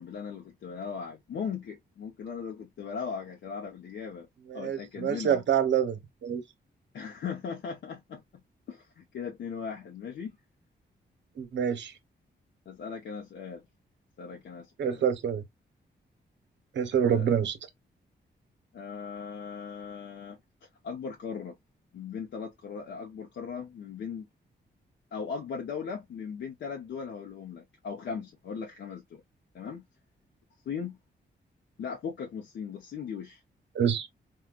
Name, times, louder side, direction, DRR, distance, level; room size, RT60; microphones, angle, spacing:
voice 1, 0.0-4.3 4.5-5.4 6.9-8.2 8.7-10.3 12.7-13.6 14.2-15.0 17.1-17.3 18.7-20.4 20.8-21.5 21.9-24.3 25.1-29.2 29.5-29.8 30.7-31.0 31.8-33.4 33.8-34.0, left 6 dB, 80° left, 0.7 m, -38 dB
voice 2, 4.5-6.4 11.4-11.9 14.8-15.4 16.7-17.6 33.7-34.1, right 8 dB, 85° right, 0.9 m, -27 dB
4.5 x 2.3 x 2.3 m
wide cardioid pair, 120°, 18 cm